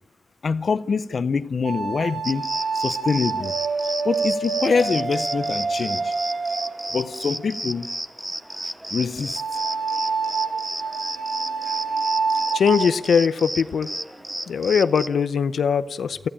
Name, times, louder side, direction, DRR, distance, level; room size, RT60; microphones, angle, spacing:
voice 1, 0.4-2.5 2.7-3.5 4.0-6.1 6.9-7.9 8.9-9.4, left 5 dB, 45° left, 0.7 m, -24 dB
sound 1, 1.6-7.5 9.4-12.9, right 4 dB, 65° right, 1.9 m, -27 dB
sound 2, 2.2-15.1, right 1 dB, 10° right, 0.8 m, -33 dB
voice 2, 12.5-13.9 14.5-16.3, left 6 dB, 85° left, 0.7 m, -21 dB
28.5 x 15.5 x 8.8 m
wide cardioid pair, 180°, 0 cm